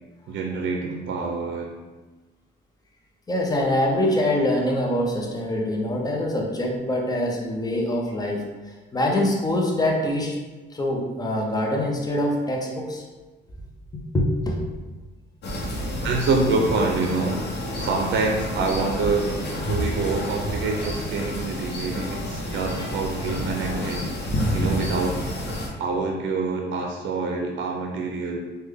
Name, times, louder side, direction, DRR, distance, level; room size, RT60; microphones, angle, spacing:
voice 1, 0.3-1.7 16.0-17.4 17.8-19.3 19.7-24.1 24.5-25.2 25.8-28.4, right 3 dB, 70° right, 1 dB, 0.5 m, -26 dB
voice 2, 3.3-8.5 8.9-10.4 10.7-13.0 14.1-14.6 22.5-22.9, left 1 dB, 20° left, 0 dB, 0.6 m, -24 dB
sound 1, 15.4-25.7, equal, 60° left, 0.8 m, -29 dB
3.3 x 2.2 x 3.4 m, 1.2 s
cardioid pair, 90°, 20 cm